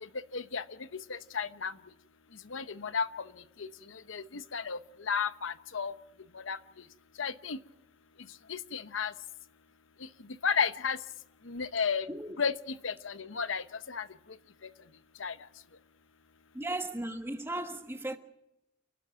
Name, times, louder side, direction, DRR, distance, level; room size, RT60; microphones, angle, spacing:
voice 1, 0.3-0.6 1.1-1.7 2.5-3.1 4.1-4.8 5.1-5.9 6.5-6.6 7.2-7.6 8.5-9.1 10.4-11.0 11.5-12.1 12.4-12.5 12.8-14.1 15.2-15.3, left 6 dB, 90° left, 0.9 m, -32 dB
voice 2, 16.5-18.2, right 1 dB, 10° right, 1.4 m, -36 dB
30.0 x 12.0 x 7.5 m
head